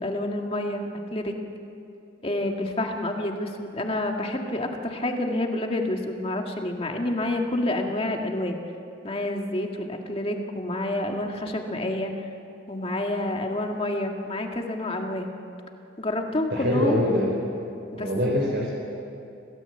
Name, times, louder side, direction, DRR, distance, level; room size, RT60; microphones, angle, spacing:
voice 1, 0.0-1.4 2.2-8.6 9.0-12.1 12.7-15.3 16.0-17.0 17.9-18.1, left 1 dB, 30° left, 2 dB, 1.9 m, -28 dB
voice 2, 16.5-17.3 17.9-18.7, left 1 dB, 60° right, -2 dB, 4.3 m, -24 dB
27.0 x 17.5 x 8.1 m, 2.7 s
head